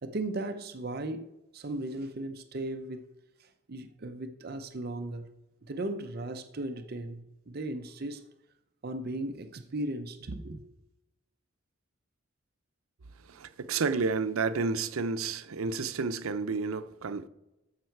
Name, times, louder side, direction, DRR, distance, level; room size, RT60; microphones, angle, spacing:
voice 1, 0.0-3.1 3.4-5.3 5.6-8.3 8.8-10.6, right 2 dB, 50° right, 0.6 m, -37 dB
voice 2, 13.3-17.3, right 4 dB, 90° right, 0.6 m, -31 dB
14.0 x 5.6 x 4.5 m
head